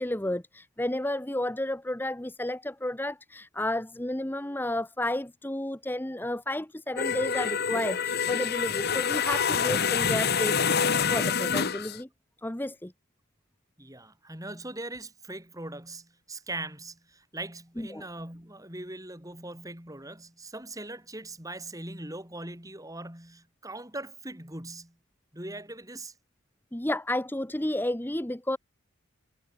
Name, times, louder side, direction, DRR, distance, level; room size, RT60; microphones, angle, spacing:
voice 1, 0.0-12.1 12.4-12.9 17.8-18.0 26.7-28.6, left 1 dB, 10° left, 0.8 m, -32 dB
sound 1, 7.0-12.0, left 6 dB, 45° left, 1.1 m, -27 dB
voice 2, 13.8-25.0 25.3-26.1, right 2 dB, 15° right, 5.8 m, -40 dB
head